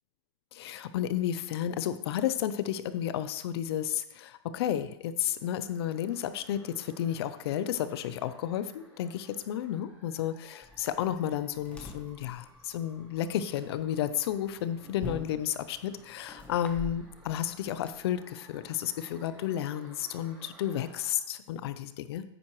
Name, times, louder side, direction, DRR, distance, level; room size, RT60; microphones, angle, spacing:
voice 1, 0.5-22.2, left 10 dB, 60° left, 13 dB, 0.6 m, -32 dB
sound 1, 5.2-21.1, right 1 dB, 15° right, 3.8 m, -58 dB
sound 2, 10.6-17.9, left 2 dB, 10° left, 1.0 m, -47 dB
9.4 x 8.7 x 3.1 m, 0.80 s
supercardioid pair, 165°, 15 cm